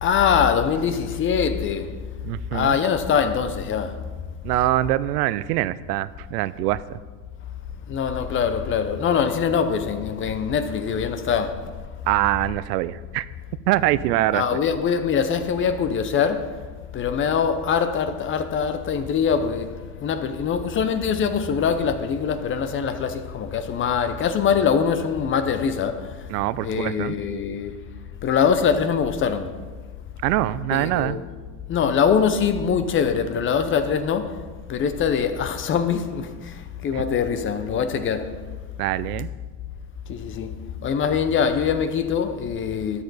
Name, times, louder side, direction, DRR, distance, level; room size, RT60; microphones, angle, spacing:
voice 1, 0.0-2.0 2.5-4.0 7.9-11.7 14.3-16.6 16.9-26.3 26.6-27.8 28.2-29.5 30.7-31.2 31.7-38.4 40.1-40.5 40.8-43.0, left 7 dB, 25° left, 0.6 m, -23 dB
voice 2, 2.2-2.8 4.4-7.0 12.1-13.3 13.7-14.6 26.3-27.2 30.2-31.2 36.9-37.0 38.8-39.3, right 15 dB, 75° right, 0.6 m, -24 dB
12.0 x 6.8 x 4.1 m
supercardioid pair, 120°, 48 cm